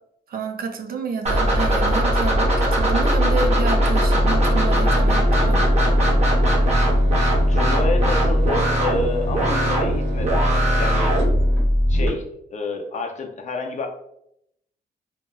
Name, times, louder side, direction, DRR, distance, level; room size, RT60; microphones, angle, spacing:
voice 1, 0.3-5.6, right 4 dB, 55° right, 6 dB, 0.4 m, -29 dB
sound 1, 1.2-12.1, equal, 35° right, 0.9 m, -19 dB
sound 2, 4.1-12.2, right 1 dB, 85° right, 1.0 m, -32 dB
voice 2, 7.5-10.4 10.8-11.2 11.9-12.2 12.5-13.9, left 3 dB, 40° left, 3 dB, 0.5 m, -28 dB
3.0 x 2.2 x 2.2 m, 0.76 s
cardioid pair, 90°, 18 cm